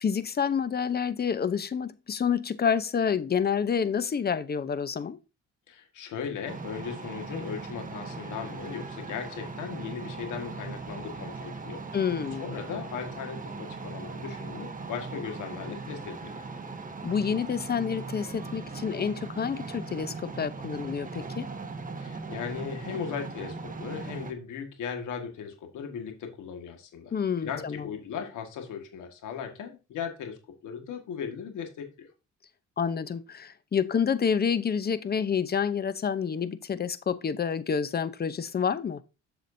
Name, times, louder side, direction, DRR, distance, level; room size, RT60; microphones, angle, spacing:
voice 1, 0.0-5.2 11.9-12.5 17.0-21.5 27.1-27.9 32.8-39.0, left 7 dB, 35° left, 0.8 m, -28 dB
voice 2, 5.7-11.8 12.4-16.4 22.0-32.1, left 7 dB, 80° left, 1.8 m, -37 dB
sound 1, 6.5-24.3, right 4 dB, 25° right, 1.2 m, -39 dB
7.5 x 7.0 x 2.7 m
cardioid pair, 90°, 30 cm